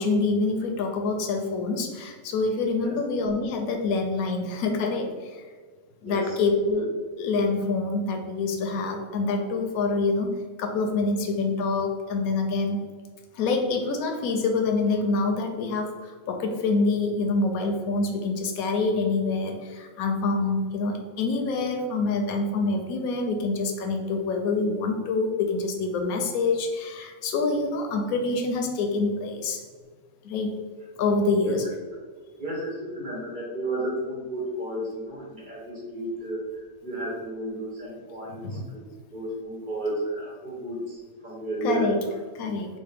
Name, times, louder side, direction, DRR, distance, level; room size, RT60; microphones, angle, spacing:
voice 1, 0.0-5.1 6.0-6.9 7.2-12.8 13.4-15.9 16.3-29.6 30.2-30.5 31.0-31.6 38.4-38.6 41.6-42.0 42.4-42.7, left 3 dB, 90° left, 4 dB, 1.0 m, -26 dB
voice 2, 6.0-6.4 31.4-31.6 31.9-32.0 32.4-38.8 39.1-42.4, right 1 dB, 45° right, -4 dB, 0.8 m, -33 dB
4.1 x 2.0 x 3.4 m, 1.5 s
omnidirectional pair, 1.5 m